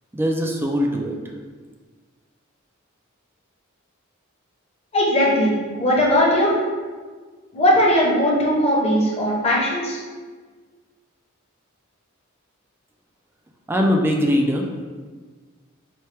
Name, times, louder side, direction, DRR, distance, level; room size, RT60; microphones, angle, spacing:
voice 1, 0.1-1.2 13.7-14.7, equal, 10° right, 1 dB, 0.3 m, -21 dB
voice 2, 4.9-6.5 7.5-10.0, equal, 30° left, -4 dB, 0.8 m, -19 dB
4.3 x 2.2 x 3.2 m, 1.5 s
head